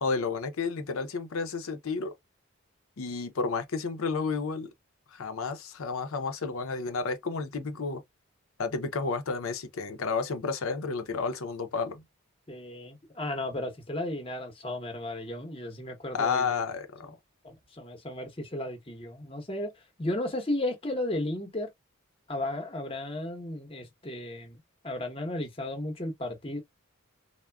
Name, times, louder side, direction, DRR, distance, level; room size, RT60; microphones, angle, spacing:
voice 1, 0.0-2.1 3.0-4.7 5.1-8.0 8.6-12.0 16.1-17.1, left 4 dB, 75° left, 0.6 m, -31 dB
voice 2, 12.5-16.6 17.0-17.1 17.4-21.7 22.3-26.6, left 1 dB, 25° left, 0.8 m, -34 dB
3.5 x 2.1 x 2.2 m
head